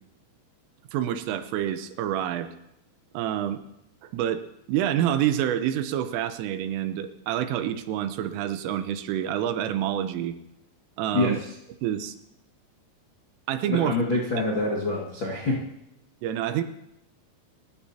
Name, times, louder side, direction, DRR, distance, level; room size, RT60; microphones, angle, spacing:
voice 1, 0.9-2.5 3.1-3.6 4.0-10.4 11.0-11.4 11.8-12.2 13.5-13.9 16.2-16.6, right 11 dB, 80° right, 10 dB, 3.4 m, -27 dB
voice 2, 11.1-11.5 13.6-15.6, left 2 dB, 55° left, -3 dB, 1.3 m, -26 dB
28.0 x 15.0 x 2.9 m, 0.85 s
omnidirectional pair, 5.9 m